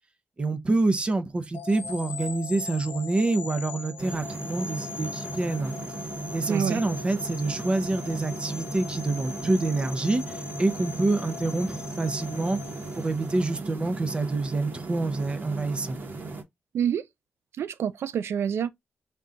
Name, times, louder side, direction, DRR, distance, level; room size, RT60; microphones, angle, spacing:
voice 1, 0.4-5.7 6.3-12.6 12.9-16.0, right 2 dB, 25° right, 0.5 m, -27 dB
sound 1, 1.5-13.7, left 5 dB, 50° left, 0.9 m, -41 dB
sound 2, 4.0-16.4, right 3 dB, 50° right, 0.9 m, -37 dB
voice 2, 6.5-6.8 16.7-17.0 17.6-18.7, right 8 dB, 85° right, 0.3 m, -27 dB
3.6 x 2.3 x 3.8 m
wide cardioid pair, 165°, 4 cm